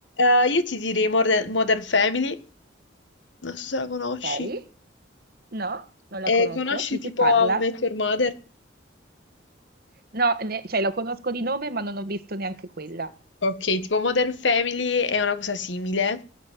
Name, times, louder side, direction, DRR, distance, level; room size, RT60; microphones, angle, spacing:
voice 1, 0.2-2.4 3.4-4.5 6.3-8.4 13.4-16.2, left 3 dB, 75° left, 1.7 m, -23 dB
voice 2, 4.2-4.6 5.5-7.6 10.1-13.1, right 3 dB, 55° right, 1.5 m, -28 dB
18.0 x 8.7 x 9.1 m
head